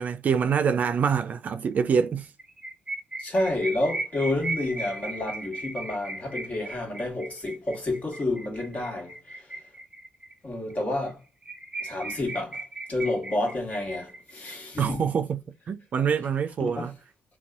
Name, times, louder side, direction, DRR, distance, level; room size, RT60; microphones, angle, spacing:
voice 1, 0.0-2.3 14.8-15.4 15.7-16.9, right 6 dB, 50° right, 0.3 m, -25 dB
sound 1, 2.4-10.3 10.7-10.8 11.1-11.2 11.4-14.5, right 2 dB, 25° right, 0.8 m, -37 dB
voice 2, 3.2-9.6 10.4-11.2 11.8-15.0 16.6-16.9, left 2 dB, 45° left, 1.4 m, -30 dB
2.6 x 2.3 x 2.3 m
supercardioid pair, 60°, 3 cm